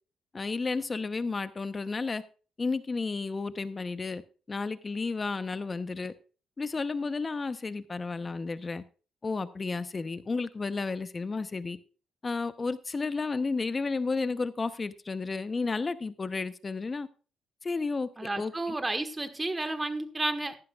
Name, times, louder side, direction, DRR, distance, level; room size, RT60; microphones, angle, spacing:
voice 1, 0.3-2.2 2.6-4.2 4.5-6.1 6.6-8.8 9.2-11.8 12.2-17.1 17.6-18.5, left 4 dB, 30° left, 0.8 m, -32 dB
voice 2, 18.2-20.6, right 2 dB, 20° right, 1.5 m, -31 dB
14.5 x 11.5 x 2.4 m
cardioid pair, 90°, 0 cm